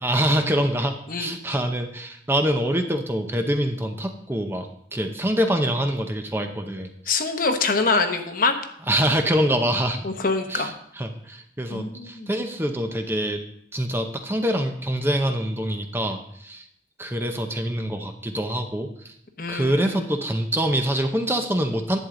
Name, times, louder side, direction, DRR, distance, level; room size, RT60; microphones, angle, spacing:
voice 1, 0.0-6.9 8.9-10.0 10.5-13.4 13.7-16.7 17.0-19.1 19.5-22.0, equal, 10° right, 5 dB, 0.7 m, -25 dB
voice 2, 7.1-8.6 10.0-10.7 11.7-12.3 19.4-20.0, left 4 dB, 50° left, 6 dB, 0.9 m, -24 dB
11.0 x 8.4 x 3.8 m, 0.71 s
head